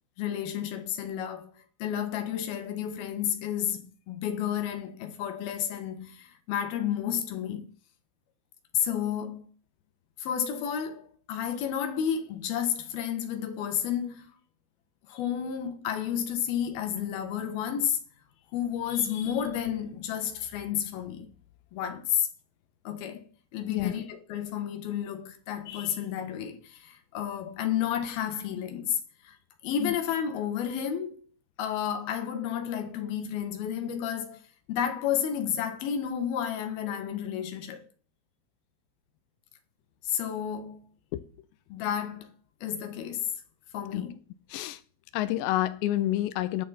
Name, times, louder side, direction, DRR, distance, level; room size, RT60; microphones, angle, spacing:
voice 1, 0.2-7.6 8.7-9.5 10.2-14.3 15.1-18.0 18.5-21.3 21.7-22.3 22.8-23.2 23.5-29.0 29.2-29.4 29.6-31.2 31.6-34.4 34.7-37.9 40.0-40.8 41.7-42.3 42.6-43.3 43.7-44.2, left 9 dB, 65° left, 2.9 m, -31 dB
voice 2, 45.1-46.7, left 14 dB, 90° left, 3.0 m, -28 dB
18.5 x 6.4 x 4.2 m
omnidirectional pair, 5.0 m